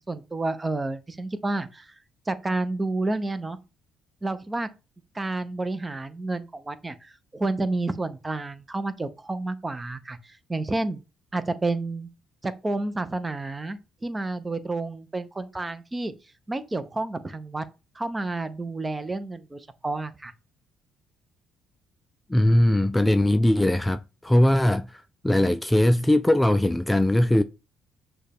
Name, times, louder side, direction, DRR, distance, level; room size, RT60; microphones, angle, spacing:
voice 1, 0.0-1.9 2.3-3.6 4.2-4.7 5.1-11.0 11.3-12.1 12.4-16.1 16.5-17.7 17.9-20.3, right 2 dB, 20° right, 0.7 m, -30 dB
voice 2, 22.3-27.4, left 1 dB, 10° left, 0.3 m, -20 dB
6.3 x 2.3 x 3.5 m
supercardioid pair, 75°, 0 cm